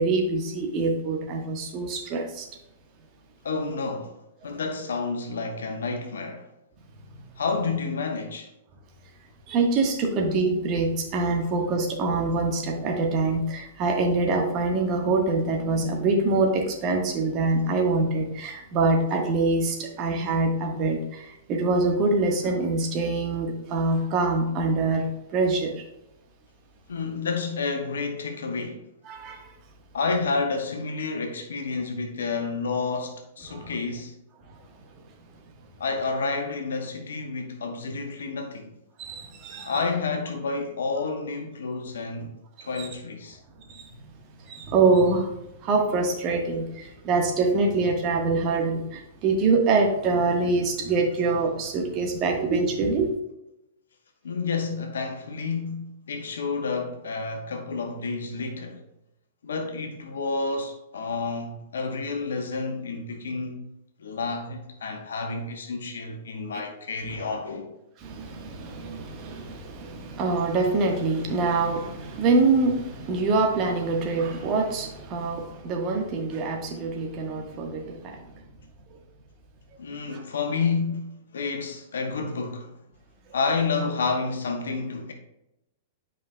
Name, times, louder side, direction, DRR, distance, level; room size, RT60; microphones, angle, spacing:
voice 1, 0.0-2.5 9.5-25.8 29.1-29.5 33.5-33.7 39.0-39.7 42.8-42.9 43.7-43.9 44.5-45.3 45.6-53.1 66.5-66.6 67.2-67.3 68.0-78.2 80.1-80.2, right 3 dB, 35° right, 1.2 m, -25 dB
voice 2, 3.4-4.2 4.4-6.5 7.4-8.5 26.9-28.9 29.9-34.1 35.8-38.7 39.6-42.3 42.6-43.4 54.2-58.8 59.4-63.6 64.0-67.7 79.8-82.7 83.3-85.1, left 4 dB, 65° left, 1.0 m, -30 dB
9.5 x 5.1 x 2.2 m
figure-of-eight pair, 105°, 0 cm